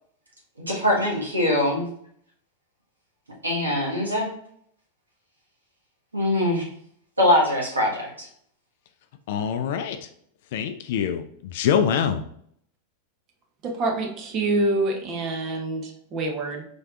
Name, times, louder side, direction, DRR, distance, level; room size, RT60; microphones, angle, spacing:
voice 1, 0.7-1.9 3.4-4.3 6.1-6.7 7.2-8.3, left 1 dB, 80° right, -2 dB, 1.4 m, -22 dB
voice 2, 9.3-10.1 10.5-12.2, left 8 dB, 55° left, 8 dB, 0.3 m, -25 dB
voice 3, 13.6-16.6, right 2 dB, 30° right, 2 dB, 0.9 m, -26 dB
4.2 x 3.2 x 2.4 m, 0.66 s
figure-of-eight pair, 90°, 0 cm